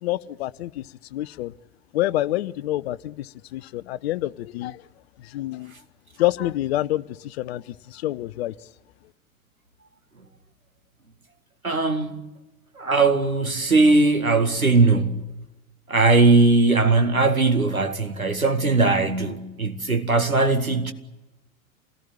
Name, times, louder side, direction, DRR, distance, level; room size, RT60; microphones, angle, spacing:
voice 1, 0.0-0.8 1.1-1.5 1.9-4.8 5.2-5.7 6.2-8.5, left 15 dB, 50° left, 0.8 m, -27 dB
voice 2, 11.6-12.2 12.8-15.4 15.9-20.9, right 3 dB, 85° right, 2.1 m, -19 dB
27.5 x 18.5 x 9.0 m
figure-of-eight pair, 90°, 41 cm